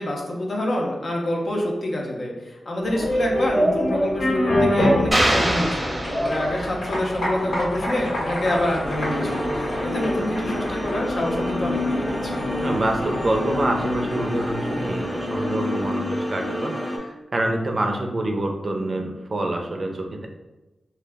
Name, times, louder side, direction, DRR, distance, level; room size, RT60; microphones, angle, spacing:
voice 1, 0.0-12.5, left 1 dB, 60° left, -1 dB, 0.6 m, -27 dB
sound 1, 2.8-15.6, equal, 90° left, 1.2 m, -27 dB
sound 2, 5.1-6.8, right 1 dB, 15° right, 0.7 m, -23 dB
sound 3, 8.8-17.0, left 1 dB, 15° left, 0.6 m, -28 dB
voice 2, 12.6-20.3, right 1 dB, 50° right, 3 dB, 0.4 m, -26 dB
2.3 x 2.0 x 3.3 m, 1.1 s
cardioid pair, 45°, 0 cm